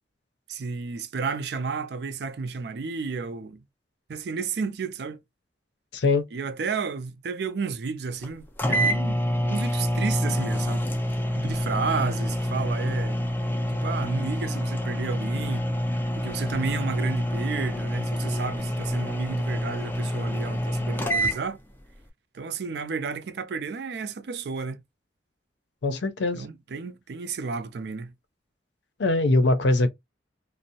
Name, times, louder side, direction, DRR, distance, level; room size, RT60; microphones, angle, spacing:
voice 1, 0.5-3.6 4.1-5.2 6.3-10.9 11.4-13.2 13.7-15.7 16.2-21.6 22.3-24.8 26.3-28.1, right 5 dB, 65° right, 0.4 m, -32 dB
voice 2, 5.9-6.2 25.8-26.5 29.0-29.9, left 2 dB, 75° left, 0.5 m, -22 dB
sound 1, 8.2-8.3 8.6-21.4, equal, 10° left, 0.3 m, -27 dB
2.6 x 2.0 x 2.6 m
head